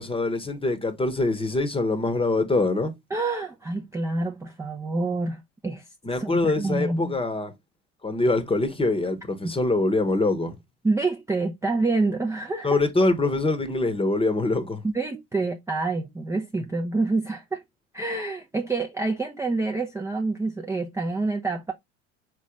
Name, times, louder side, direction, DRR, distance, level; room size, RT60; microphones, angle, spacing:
voice 1, 0.0-2.9 6.0-7.5 8.0-10.6 12.6-14.8, left 2 dB, 15° left, 1.0 m, -24 dB
voice 2, 3.1-5.8 6.1-7.2 10.8-12.8 14.8-17.6 17.9-21.7, right 3 dB, 10° right, 0.5 m, -27 dB
4.1 x 3.2 x 3.6 m
hypercardioid pair, 70°, 36 cm